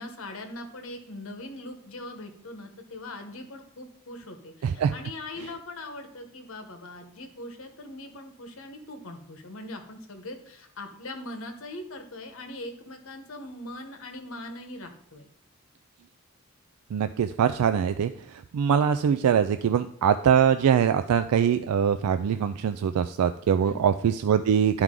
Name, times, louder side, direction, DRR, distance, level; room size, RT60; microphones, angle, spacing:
voice 1, 0.0-15.3 23.6-23.8, left 1 dB, 70° left, 5 dB, 1.1 m, -41 dB
voice 2, 4.6-4.9 16.9-18.1 18.5-24.8, right 8 dB, 90° right, 11 dB, 0.3 m, -23 dB
10.5 x 4.7 x 3.7 m, 0.67 s
head